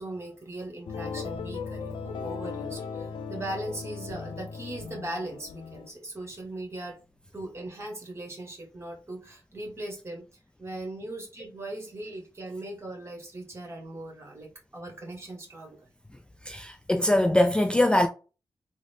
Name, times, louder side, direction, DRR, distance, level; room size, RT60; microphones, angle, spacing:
voice 1, 0.0-7.0 7.3-15.9, right 1 dB, 30° right, 1.4 m, -39 dB
sound 1, 0.9-5.9, left 5 dB, 75° left, 0.4 m, -37 dB
voice 2, 16.4-18.1, left 1 dB, 10° left, 0.3 m, -22 dB
3.7 x 2.1 x 3.4 m
cardioid pair, 80°, 9 cm